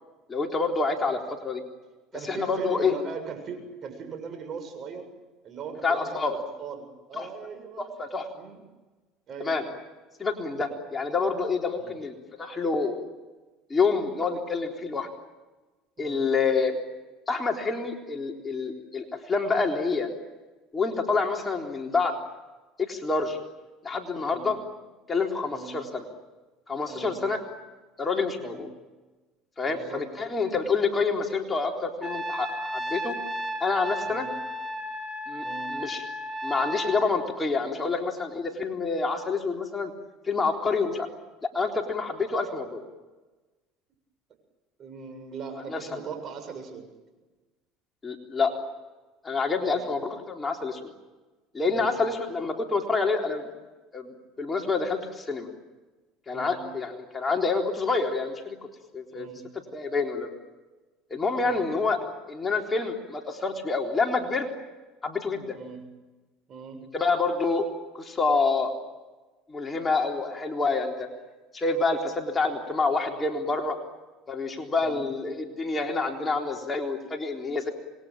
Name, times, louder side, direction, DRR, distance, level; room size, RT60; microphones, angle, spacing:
voice 1, 0.3-1.6 2.3-2.9 5.8-6.4 7.2-7.3 7.8-8.3 9.4-9.6 10.2-13.0 13.7-15.1 16.0-16.8 17.3-20.1 20.7-22.1 22.8-23.4 23.8-24.6 25.1-26.0 26.7-27.4 28.0-28.7 29.6-33.2 33.6-34.3 35.3-35.4 35.7-36.0 36.4-39.9 40.2-41.1 41.5-42.8 45.7-46.0 48.0-48.5 49.2-50.9 51.5-53.5 53.9-55.5 56.3-58.6 58.9-59.3 59.7-60.3 61.1-62.0 62.3-64.5 65.0-65.6 66.9-67.7 67.9-68.7 69.5-71.1 71.5-73.8 74.3-77.7, left 4 dB, 20° left, 1 dB, 3.8 m, -27 dB
voice 2, 2.1-5.1 5.4-7.9 8.3-8.6 9.3-9.6 11.8-11.9 16.0-16.3 24.3-24.5 25.5-25.8 26.9-27.2 28.4-28.6 29.6-30.0 34.0-34.3 35.4-35.7 44.8-46.8 49.6-49.8 51.7-51.9 56.3-56.6 59.1-59.4 61.4-61.7 65.5-65.8 66.5-66.8 74.8-75.1, right 6 dB, 45° right, 7 dB, 7.5 m, -40 dB
Trumpet, 32.0-37.1, equal, ahead, 4.4 m, -33 dB
27.0 x 21.5 x 9.0 m, 1.2 s
supercardioid pair, 100°, 0 cm